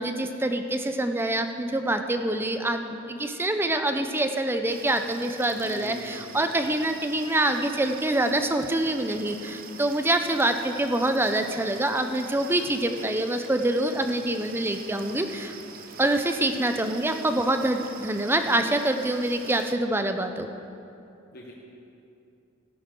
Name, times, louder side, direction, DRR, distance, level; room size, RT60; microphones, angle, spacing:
voice 1, 0.0-2.8 3.1-15.6 16.0-20.5, right 1 dB, 10° right, 7 dB, 0.5 m, -25 dB
sound 1, 4.7-19.7, right 6 dB, 45° right, 0.7 m, -44 dB
voice 2, 5.5-6.6 21.3-21.5, left 1 dB, 50° left, -3 dB, 1.1 m, -43 dB
14.0 x 11.0 x 3.8 m, 2.7 s
head